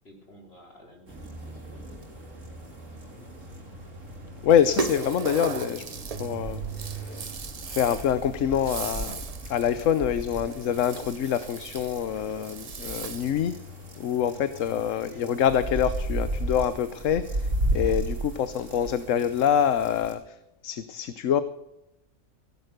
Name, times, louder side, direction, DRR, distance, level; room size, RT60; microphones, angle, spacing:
voice 1, 0.0-2.0 3.1-3.7 15.1-15.3, equal, 50° left, 0 dB, 4.1 m, -52 dB
sound 1, 1.1-20.1, right 1 dB, 70° right, 3.6 m, -35 dB
voice 2, 4.4-5.8 6.1-7.4 7.7-13.6 14.0-20.4 20.6-21.4, left 9 dB, 75° left, 13 dB, 1.1 m, -26 dB
Rattle (instrument), 4.5-13.5, right 4 dB, 35° right, 0.7 m, -37 dB
16.5 x 11.0 x 6.6 m, 0.87 s
omnidirectional pair, 1.4 m